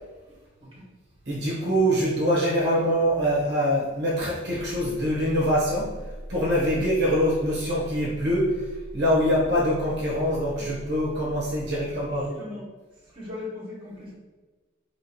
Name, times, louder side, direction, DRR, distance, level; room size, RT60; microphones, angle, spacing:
voice 1, 1.3-5.9 6.3-12.3, equal, 55° right, -5 dB, 0.8 m, -24 dB
voice 2, 11.2-12.6 13.1-14.1, left 2 dB, 25° right, -5 dB, 1.2 m, -40 dB
3.0 x 2.8 x 4.4 m, 1.3 s
head